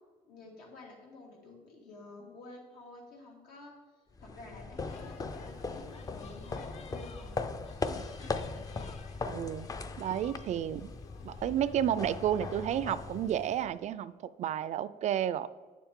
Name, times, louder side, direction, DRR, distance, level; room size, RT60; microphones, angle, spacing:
voice 1, 0.2-3.7 4.2-7.4, left 2 dB, 85° left, -1 dB, 2.6 m, -51 dB
sound 1, 4.1-13.8, left 4 dB, 25° left, 0.5 m, -39 dB
sound 2, 4.9-13.7, left 4 dB, 45° left, 0.8 m, -56 dB
voice 2, 9.3-9.7 10.0-10.9 11.2-14.1 14.4-15.5, right 10 dB, 55° right, 16 dB, 0.4 m, -31 dB
9.3 x 7.2 x 3.6 m, 1.4 s
cardioid pair, 125°, 15 cm